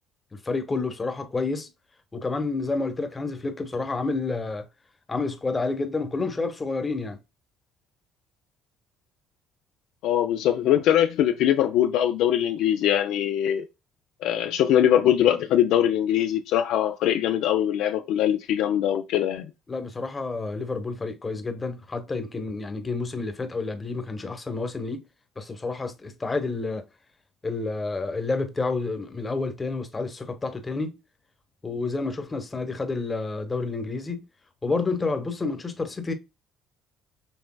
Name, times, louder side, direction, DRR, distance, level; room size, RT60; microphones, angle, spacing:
voice 1, 0.3-1.7 2.1-4.7 5.1-7.2 19.7-25.0 25.4-26.8 27.4-31.0 31.6-34.3 34.6-36.1, left 3 dB, 25° left, 1.0 m, -29 dB
voice 2, 10.0-13.6 14.2-19.5, left 11 dB, 75° left, 0.4 m, -22 dB
6.2 x 3.3 x 2.2 m
supercardioid pair, 75°, 0 cm